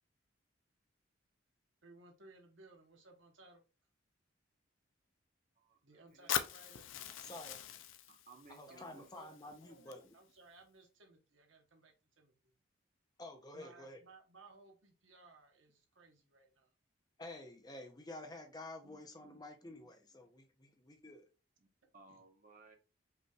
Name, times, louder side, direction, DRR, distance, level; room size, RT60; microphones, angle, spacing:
voice 1, 1.8-3.6 5.8-6.9 8.7-12.5 13.5-16.7 18.8-19.4 22.1-22.2, right 2 dB, 75° right, 1.1 m, -61 dB
voice 2, 5.6-6.4 8.1-9.2 21.6-21.7 21.9-22.8, right 3 dB, 40° right, 0.8 m, -61 dB
Fire, 6.3-10.3, left 10 dB, 80° left, 0.4 m, -42 dB
voice 3, 7.2-7.6 8.5-10.1 13.2-14.0 17.2-21.3, left 1 dB, 20° left, 0.5 m, -50 dB
5.2 x 3.0 x 2.3 m
head